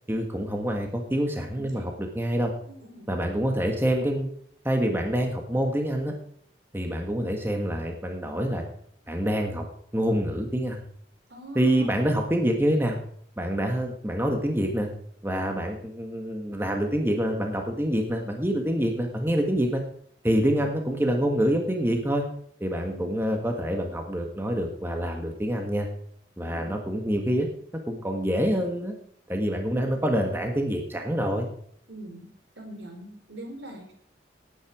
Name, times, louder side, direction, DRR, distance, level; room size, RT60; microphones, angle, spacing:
voice 1, 0.1-2.5 3.1-4.3 4.6-6.1 6.7-8.6 9.1-9.6 9.9-10.8 11.5-13.0 13.4-14.9 15.2-19.8 20.2-22.2 22.6-25.9 26.4-27.5 27.9-28.9 29.3-31.5, equal, 10° right, 3 dB, 1.5 m, -26 dB
voice 2, 1.5-1.9 2.7-3.1 11.3-12.1 20.2-20.7 22.9-23.3 26.5-26.8 31.9-32.3 32.6-33.9, right 1 dB, 75° right, 3 dB, 4.4 m, -43 dB
18.0 x 9.1 x 4.9 m, 0.64 s
head